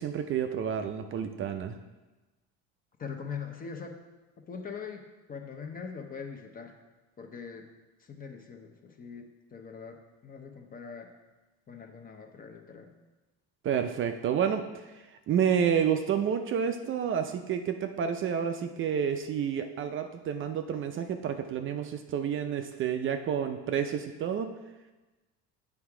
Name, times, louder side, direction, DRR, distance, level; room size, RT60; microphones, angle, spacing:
voice 1, 0.0-1.8 13.6-14.6 15.3-24.5, right 8 dB, 40° right, 6 dB, 0.5 m, -29 dB
voice 2, 3.0-4.0 4.5-6.8 7.2-7.7 8.0-11.1 11.7-12.9, left 6 dB, 25° left, 4 dB, 0.7 m, -42 dB
8.1 x 3.5 x 4.8 m, 1.1 s
cardioid pair, 115°, 33 cm